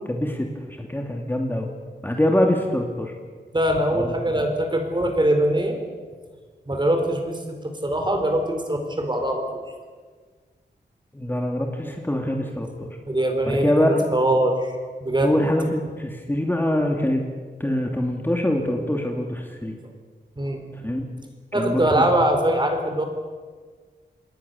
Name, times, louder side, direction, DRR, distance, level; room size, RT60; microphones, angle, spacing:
voice 1, 0.1-1.7 2.0-3.1 3.9-4.1 11.1-12.9 13.4-14.1 15.2-17.2 17.6-19.8 20.7-21.0 21.5-22.0, left 1 dB, 10° left, 2 dB, 2.5 m, -24 dB
voice 2, 3.5-5.8 6.7-9.4 13.1-14.7 15.0-15.3 20.4-20.6 21.5-23.0, right 1 dB, 25° right, 4 dB, 4.5 m, -22 dB
27.5 x 20.5 x 7.1 m, 1.5 s
wide cardioid pair, 100°, 18 cm